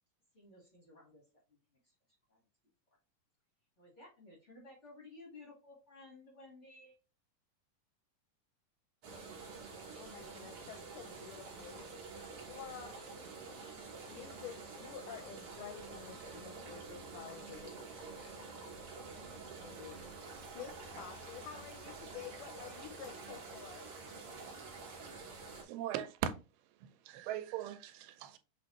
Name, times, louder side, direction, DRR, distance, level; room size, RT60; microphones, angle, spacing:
voice 1, 0.3-1.3 1.8-1.9 2.3-2.4 3.8-7.0, left 2 dB, 55° left, 0.7 m, -56 dB
sound 1, 9.0-25.6, right 4 dB, 60° right, 1.4 m, -48 dB
voice 2, 9.9-12.2 12.5-13.1 13.5-19.3 19.6-20.0 20.6-23.9, left 9 dB, 80° left, 1.8 m, -51 dB
sound 2, 15.7-15.9 16.2-16.5 17.2-17.7 18.1-18.4 19.6-20.1 20.5-20.6, equal, 25° left, 0.7 m, -65 dB
voice 3, 25.6-26.4 26.8-28.4, right 10 dB, 85° right, 2.3 m, -39 dB
6.2 x 2.6 x 3.0 m
omnidirectional pair, 3.9 m